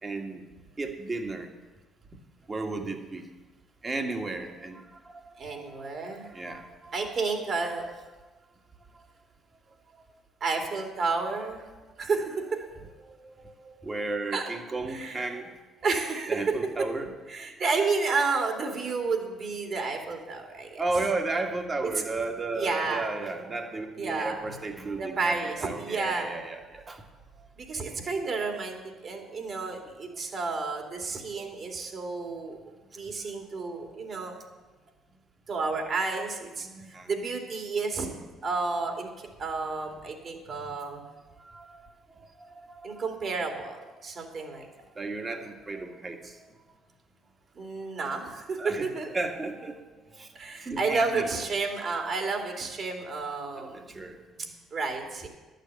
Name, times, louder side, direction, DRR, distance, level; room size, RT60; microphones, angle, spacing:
voice 1, 0.0-0.4 0.8-1.5 2.5-3.2 3.8-7.1 12.0-12.1 13.0-15.5 16.3-17.1 20.8-25.4 25.6-27.0 31.4-31.5 36.6-37.1 40.5-40.7 40.9-41.1 41.4-41.9 42.2-43.0 43.5-43.6 45.0-46.4 48.6-48.9 49.1-49.7 50.1-51.3 53.6-54.2, right 3 dB, 30° right, 4 dB, 1.8 m, -34 dB
voice 2, 5.4-6.3 6.9-7.9 10.4-11.7 12.0-12.6 14.3-14.5 14.9-15.3 15.8-16.6 17.3-20.8 22.5-23.1 24.0-24.4 25.0-26.3 27.6-28.8 29.0-32.6 32.9-34.4 35.5-36.7 37.1-38.1 38.4-41.0 42.8-44.7 47.6-49.1 50.3-53.8 54.7-55.3, right 4 dB, 50° right, 2 dB, 2.6 m, -31 dB
11.5 x 6.7 x 7.7 m, 1.2 s
hypercardioid pair, 60°, 0 cm